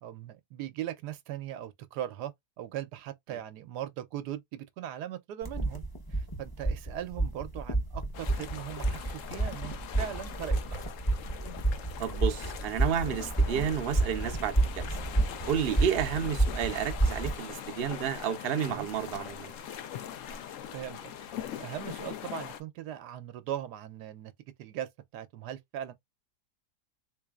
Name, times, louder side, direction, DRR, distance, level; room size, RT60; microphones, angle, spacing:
voice 1, 0.0-2.3 2.6-5.8 6.1-10.9 18.7-18.9 20.7-21.1 21.4-24.3 24.6-25.9, right 11 dB, 80° right, 1.2 m, -39 dB
sound 1, 5.4-17.3, right 2 dB, 20° left, 0.6 m, -30 dB
sound 2, 8.1-22.6, left 9 dB, 65° left, 0.9 m, -42 dB
voice 2, 12.0-14.9 15.5-19.5, right 8 dB, 55° right, 0.7 m, -31 dB
3.9 x 3.2 x 2.3 m
omnidirectional pair, 1.8 m